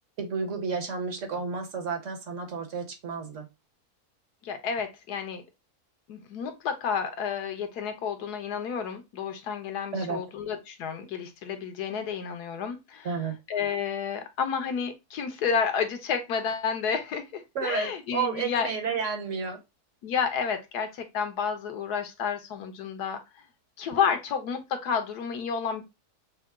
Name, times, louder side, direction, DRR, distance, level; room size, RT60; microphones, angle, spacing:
voice 1, 0.2-3.5 9.9-10.2 13.0-13.3 17.5-19.6, right 5 dB, 55° right, 4 dB, 1.4 m, -31 dB
voice 2, 4.4-5.4 6.1-13.1 13.5-18.7 20.0-23.2 23.8-25.8, left 6 dB, 90° left, 7 dB, 1.4 m, -30 dB
6.6 x 2.2 x 3.6 m, 0.24 s
omnidirectional pair, 1.6 m